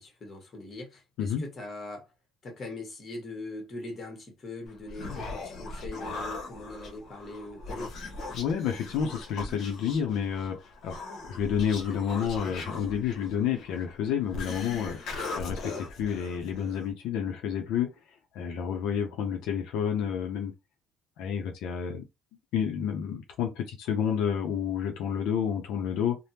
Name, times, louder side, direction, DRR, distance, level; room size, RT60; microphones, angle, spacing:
voice 1, 0.0-2.1 2.4-7.9 11.9-12.6, left 2 dB, 30° left, 1.2 m, -41 dB
Human voice, 4.7-16.9, left 3 dB, 50° left, 1.0 m, -39 dB
voice 2, 8.3-11.0 11.3-17.9 18.3-20.5 21.2-22.0 22.5-26.2, left 8 dB, 75° left, 0.6 m, -30 dB
3.4 x 2.1 x 2.8 m
cardioid pair, 155°, 0 cm